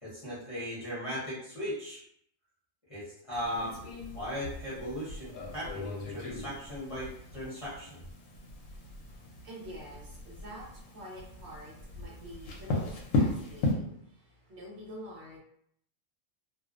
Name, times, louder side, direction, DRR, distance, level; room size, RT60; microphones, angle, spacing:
voice 1, 0.0-2.0 2.9-3.8 4.1-8.0, equal, 30° left, -10 dB, 0.7 m, -38 dB
sound 1, 3.3-13.7, left 2 dB, 80° left, 1.0 m, -36 dB
voice 2, 8.5-15.4, equal, 65° right, -3 dB, 0.9 m, -48 dB
2.5 x 2.0 x 2.4 m, 0.69 s
omnidirectional pair, 1.4 m